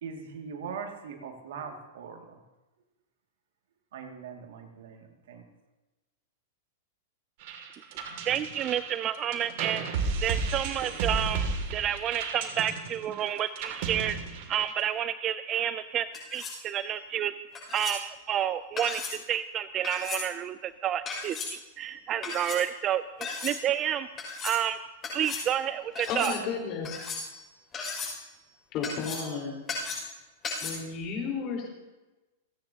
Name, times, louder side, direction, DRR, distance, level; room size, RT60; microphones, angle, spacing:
voice 1, 0.0-2.4 3.9-5.5, right 6 dB, 75° right, 3 dB, 2.3 m, -41 dB
sound 1, 7.4-14.9, right 4 dB, 55° right, 2.4 m, -33 dB
voice 2, 8.3-9.8 10.2-11.5 11.7-17.3 17.7-23.0 23.4-24.1 24.4-24.8 25.1-26.4, right 10 dB, 30° right, 13 dB, 0.4 m, -30 dB
sound 2, 16.1-16.6 17.6-18.0 18.8-19.2 19.8-20.3 21.1-21.5 22.2-22.6 23.2-23.6 24.2-24.6 25.0-25.5 26.0-26.4 26.8-27.4 27.7-28.2 28.8-29.3 29.7-30.1 30.4-30.7, left 4 dB, 25° left, 6.0 m, -36 dB
voice 3, 26.1-27.0 28.7-29.6 30.6-31.7, left 5 dB, 40° left, 0 dB, 4.3 m, -33 dB
29.0 x 10.0 x 2.9 m, 1.1 s
hypercardioid pair, 130°, 0 cm